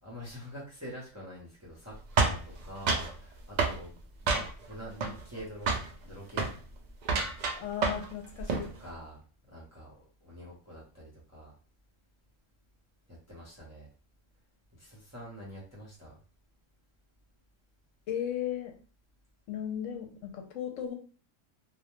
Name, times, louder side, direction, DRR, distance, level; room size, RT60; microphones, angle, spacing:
voice 1, 0.0-5.8 6.0-6.5 8.6-9.2 9.5-11.5 13.1-13.9 14.8-16.1, equal, 15° right, -5 dB, 0.6 m, -46 dB
sound 1, 2.2-3.1 3.6-3.8 4.3-4.7 5.0-5.4 5.7-5.9 6.3-6.6 7.0-8.1 8.4-8.7, right 4 dB, 80° right, 0.4 m, -28 dB
voice 2, 7.6-8.7 18.1-18.8 19.5-20.9, left 9 dB, 80° left, 3 dB, 1.0 m, -36 dB
2.3 x 2.2 x 3.0 m, 0.37 s
omnidirectional pair, 1.3 m